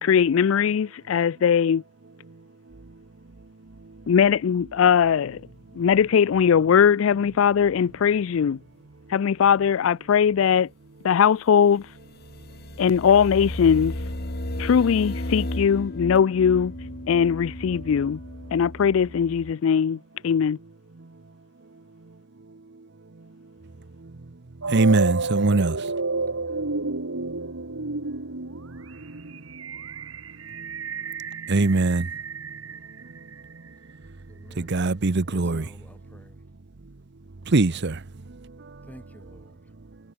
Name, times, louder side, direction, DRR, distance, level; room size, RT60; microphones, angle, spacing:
voice 1, 0.0-1.8 4.1-5.4 5.7-8.6 9.1-10.7 11.0-11.9 12.8-13.9 14.6-16.7 17.1-18.2 18.5-20.6, left 7 dB, 75° left, 0.4 m, -20 dB
sound 1, 5.3-5.6 5.9-6.2 6.5-6.9 7.2-7.4 7.8-8.1 8.4-8.6 11.8-19.5, left 1 dB, 55° left, 3.1 m, -35 dB
sound 2, 24.6-33.6, right 3 dB, 85° right, 1.9 m, -31 dB
voice 2, 24.7-25.9 26.8-27.0 27.2-27.5 30.6-30.7 31.5-32.1 34.6-35.7 37.5-38.0 38.6-38.8, right 3 dB, 60° right, 0.8 m, -22 dB
voice 3, 26.3-26.7 34.3-34.8 35.3-36.4 38.9-39.6, equal, 10° left, 2.5 m, -50 dB
head